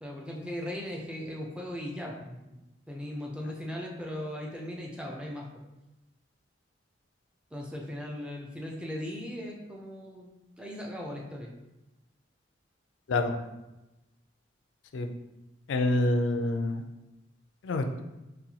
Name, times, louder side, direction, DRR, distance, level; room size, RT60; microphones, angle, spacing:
voice 1, 0.0-2.6 2.9-5.6 7.5-10.3 10.6-11.5, left 1 dB, 5° right, -1 dB, 0.4 m, -38 dB
voice 2, 15.7-16.8 17.6-18.0, left 2 dB, 85° left, 6 dB, 0.4 m, -27 dB
4.0 x 2.2 x 2.8 m, 0.99 s
head